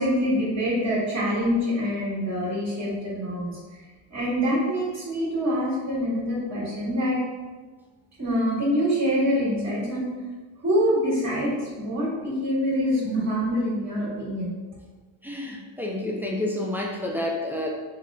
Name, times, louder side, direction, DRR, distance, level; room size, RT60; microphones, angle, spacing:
voice 1, 0.0-3.5 4.1-7.2 8.2-10.1 10.6-14.5, equal, 35° right, -7 dB, 1.2 m, -25 dB
voice 2, 15.2-17.7, left 1 dB, 5° right, -1 dB, 0.5 m, -29 dB
3.6 x 2.3 x 3.4 m, 1.3 s
cardioid pair, 80°, 50 cm